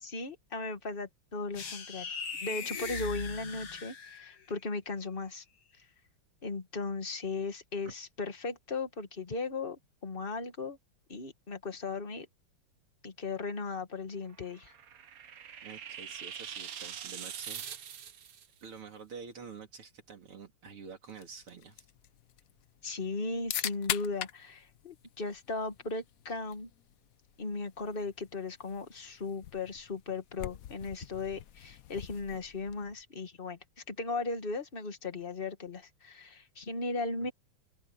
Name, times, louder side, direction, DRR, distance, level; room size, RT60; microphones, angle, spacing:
voice 1, 0.0-2.1 2.4-5.4 6.4-10.8 11.1-12.3 13.0-14.7 22.8-26.7 27.4-33.6 33.9-37.3, left 3 dB, 25° left, 1.7 m, -37 dB
sound 1, 1.5-4.4, left 5 dB, 50° left, 2.3 m, -39 dB
sound 2, 14.3-18.5, right 8 dB, 50° right, 1.2 m, -43 dB
voice 2, 15.6-17.7 18.6-21.9, right 5 dB, 80° right, 3.6 m, -48 dB
sound 3, 21.1-33.0, left 11 dB, 85° left, 0.7 m, -43 dB
open air
omnidirectional pair, 2.4 m